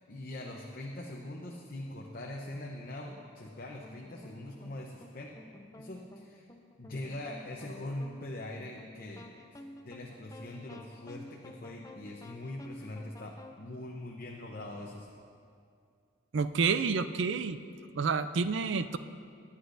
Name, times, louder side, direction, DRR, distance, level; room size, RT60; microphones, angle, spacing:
voice 1, 0.1-5.3 5.8-6.5 6.8-15.1, left 1 dB, 45° left, -1 dB, 0.8 m, -42 dB
sound 1, 1.9-2.2 3.1-13.5, left 1 dB, 15° left, 0.5 m, -52 dB
voice 2, 16.3-17.6 18.0-19.0, right 5 dB, 65° right, 11 dB, 0.4 m, -29 dB
19.5 x 9.8 x 2.6 m, 2.3 s
head